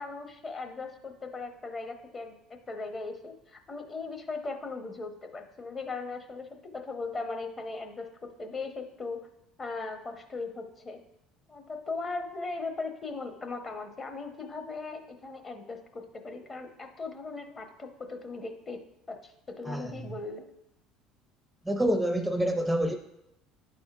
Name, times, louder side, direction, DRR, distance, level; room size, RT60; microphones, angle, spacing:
voice 1, 0.0-2.4 2.7-9.2 9.6-11.0 11.5-20.5, left 3 dB, 30° left, 5 dB, 0.9 m, -38 dB
voice 2, 21.7-23.0, right 1 dB, 10° right, 6 dB, 0.5 m, -27 dB
10.0 x 4.2 x 2.4 m, 0.84 s
supercardioid pair, 90°, 0 cm